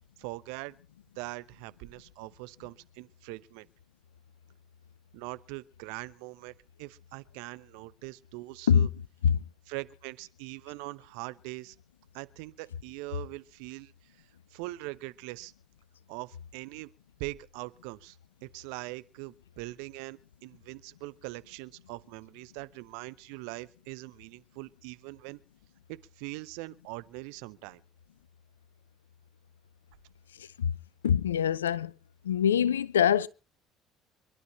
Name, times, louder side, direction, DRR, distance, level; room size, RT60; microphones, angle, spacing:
voice 1, 0.2-0.7 1.2-3.7 5.1-8.9 9.7-11.7 12.1-13.9 14.5-15.5 16.1-16.9 17.2-18.2 18.4-25.4 25.9-27.8, right 21 dB, 65° right, 1.0 m, -42 dB
voice 2, 30.4-30.7 31.0-31.9 32.2-33.3, left 8 dB, 80° left, 0.7 m, -24 dB
26.5 x 12.5 x 3.3 m
figure-of-eight pair, 55°, 0 cm